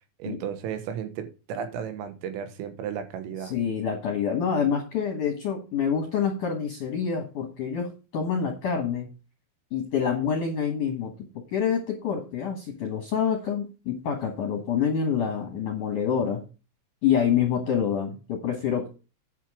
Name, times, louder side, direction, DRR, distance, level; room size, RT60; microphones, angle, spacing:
voice 1, 0.2-3.5, right 8 dB, 85° right, 3.8 m, -34 dB
voice 2, 3.4-9.1 9.7-16.4 17.0-18.9, left 7 dB, 65° left, 2.0 m, -27 dB
10.5 x 5.9 x 5.0 m
omnidirectional pair, 5.8 m